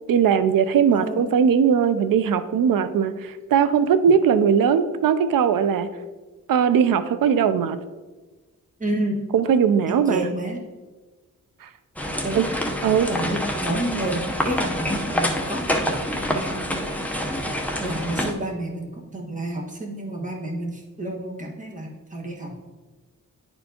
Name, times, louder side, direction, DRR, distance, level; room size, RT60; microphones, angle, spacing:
voice 1, 0.1-5.9 6.5-7.8 9.3-10.3 11.6-11.7 12.3-12.4 12.8-13.1, right 7 dB, 80° right, 11 dB, 0.5 m, -19 dB
voice 2, 0.9-1.3 8.8-9.2 9.9-10.6 12.2-12.5 13.1-17.0 17.8-22.6, right 1 dB, 25° right, -1 dB, 1.5 m, -30 dB
sound 1, 12.0-18.3, equal, 5° left, 0.7 m, -27 dB
10.0 x 4.4 x 2.8 m, 1.2 s
wide cardioid pair, 90°, 33 cm